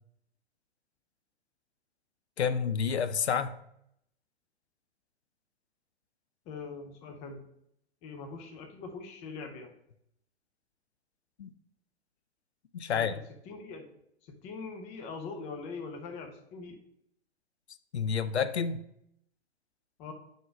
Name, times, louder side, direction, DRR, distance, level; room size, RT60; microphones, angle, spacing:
voice 1, 2.4-3.5 11.4-11.5 12.7-13.2 17.9-18.8, left 6 dB, 75° left, 12 dB, 0.5 m, -29 dB
voice 2, 6.5-7.4 8.0-9.7 12.9-13.9 14.3-16.8 20.0-20.1, left 4 dB, 20° left, 5 dB, 0.6 m, -42 dB
5.3 x 3.8 x 4.9 m, 0.75 s
figure-of-eight pair, 110°, 33 cm